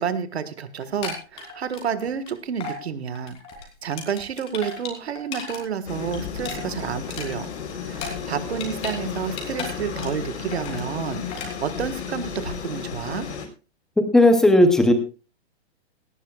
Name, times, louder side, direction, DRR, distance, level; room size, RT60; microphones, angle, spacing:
voice 1, 0.0-3.4 3.8-7.5 7.9-13.3, right 7 dB, 70° right, 13 dB, 1.6 m, -30 dB
sound 1, 0.8-2.3 2.6-2.8 3.1-5.6 5.9-9.0 9.2-10.3 10.5-10.9 11.3-11.5, left 4 dB, 20° left, 3.0 m, -35 dB
sound 2, 5.9-13.5, left 6 dB, 75° left, 3.8 m, -33 dB
voice 2, 14.0-14.9, left 1 dB, ahead, 8 dB, 0.7 m, -15 dB
17.5 x 14.5 x 2.4 m, 0.33 s
hypercardioid pair, 165°, 34 cm